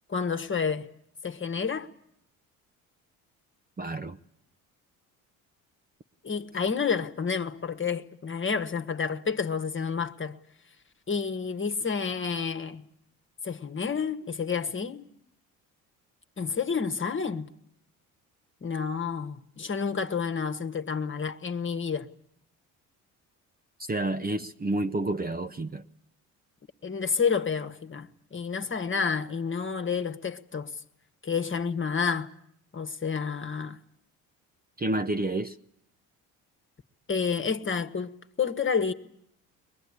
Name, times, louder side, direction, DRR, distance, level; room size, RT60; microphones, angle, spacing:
voice 1, 0.1-0.9 1.2-1.9 6.2-10.4 11.1-12.8 13.4-15.1 16.4-17.5 18.6-22.1 26.8-30.7 31.2-32.3 32.7-33.8 37.1-38.1 38.4-38.9, left 6 dB, 30° left, 1.6 m, -29 dB
voice 2, 3.8-4.2 23.8-25.8 34.8-35.6, right 2 dB, 20° right, 1.1 m, -29 dB
23.0 x 20.5 x 9.9 m
hypercardioid pair, 60°, 41 cm